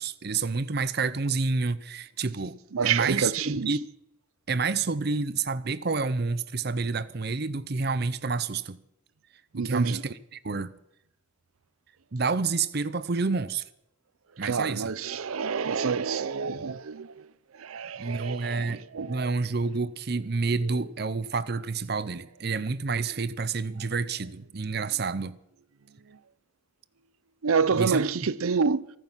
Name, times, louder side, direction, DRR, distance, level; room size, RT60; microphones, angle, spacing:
voice 1, 0.0-3.8 4.5-8.8 9.5-10.7 12.1-13.6 14.4-14.9 18.0-25.4 27.8-28.1, right 4 dB, 50° right, 0.7 m, -29 dB
voice 2, 2.7-3.7 9.5-10.0 14.4-17.1 17.6-19.3 27.4-28.8, right 5 dB, 90° right, 0.6 m, -27 dB
24.0 x 9.4 x 5.7 m
head